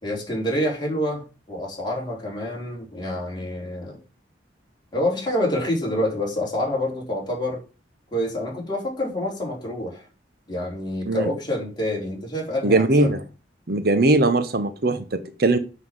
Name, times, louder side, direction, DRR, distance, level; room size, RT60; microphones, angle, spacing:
voice 1, 0.0-4.0 4.9-7.6 8.1-10.1 10.5-13.1, left 1 dB, 25° left, 4.1 m, -27 dB
voice 2, 12.6-13.2 13.7-15.6, right 2 dB, 55° right, 0.9 m, -20 dB
8.2 x 5.7 x 7.4 m
head